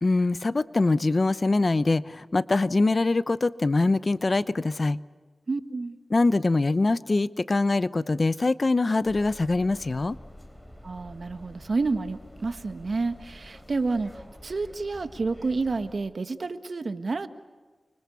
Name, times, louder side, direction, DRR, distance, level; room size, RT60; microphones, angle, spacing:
voice 1, 0.0-5.0 6.1-10.2, left 3 dB, 45° left, 16 dB, 0.8 m, -23 dB
voice 2, 5.5-6.0 10.8-17.3, right 3 dB, 65° right, 10 dB, 1.5 m, -29 dB
sound 1, 9.0-16.0, left 1 dB, 5° left, 3.9 m, -47 dB
29.0 x 25.0 x 7.0 m, 1.4 s
wide cardioid pair, 65°, 0 cm